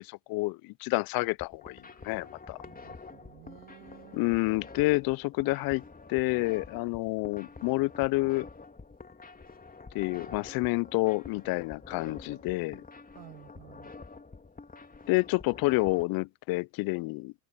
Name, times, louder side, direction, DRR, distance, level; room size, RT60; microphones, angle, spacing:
voice 1, 0.0-2.6 4.1-5.8 6.1-8.5 9.9-12.8 15.1-17.3, left 23 dB, 60° left, 0.6 m, -29 dB
sound 1, 1.3-16.0, left 3 dB, 20° left, 3.2 m, -48 dB
voice 2, 2.6-4.4 13.1-13.9, right 14 dB, 65° right, 7.5 m, -52 dB
hypercardioid pair, 65°, 40 cm